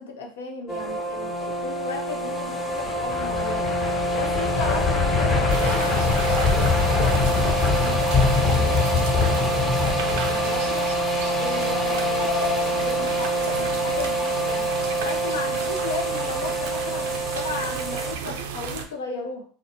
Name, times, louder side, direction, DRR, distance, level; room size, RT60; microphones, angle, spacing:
voice 1, 0.0-3.7 4.1-10.9 11.3-14.7 15.0-19.4, left 4 dB, 85° left, 3 dB, 0.5 m, -34 dB
sound 1, 0.7-18.1, right 1 dB, 10° left, 0.5 m, -26 dB
sound 2, 2.7-10.8, left 4 dB, 45° left, 1.3 m, -24 dB
sound 3, 5.5-18.9, right 6 dB, 75° right, 0.3 m, -33 dB
2.6 x 2.1 x 2.7 m, 0.43 s
hypercardioid pair, 85°, 0 cm